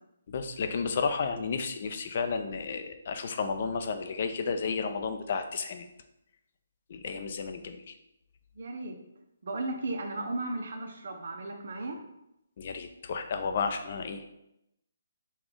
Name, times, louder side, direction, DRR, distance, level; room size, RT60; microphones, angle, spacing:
voice 1, 0.3-5.9 6.9-8.0 12.6-14.3, left 5 dB, 50° left, 7 dB, 0.5 m, -32 dB
voice 2, 8.5-9.0 9.4-12.0, right 2 dB, 65° right, 2 dB, 0.6 m, -35 dB
5.2 x 2.3 x 3.7 m, 0.84 s
hypercardioid pair, 155°, 0 cm